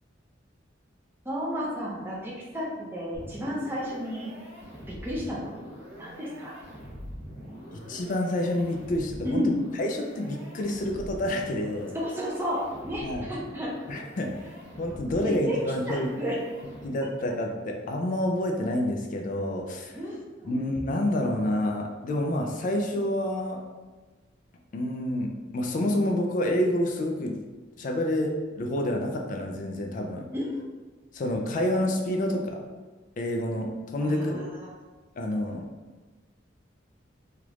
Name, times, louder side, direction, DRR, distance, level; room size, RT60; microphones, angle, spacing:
voice 1, 1.2-4.3 4.9-5.5 6.0-6.5 9.2-9.6 11.9-13.7 15.2-15.6 15.9-16.4 19.9-20.6 30.3-30.6 34.0-34.7, equal, 10° right, -6 dB, 0.5 m, -32 dB
sound 1, 3.1-17.2, equal, 75° right, 1.3 m, -44 dB
voice 2, 7.7-12.0 13.0-13.3 13.9-14.4 14.8-16.1 16.8-20.0 20.4-23.6 24.7-27.4 27.8-30.3 31.1-32.6 33.2-34.5 35.2-35.7, left 1 dB, 45° left, 1 dB, 0.3 m, -28 dB
3.3 x 2.4 x 3.0 m, 1.3 s
head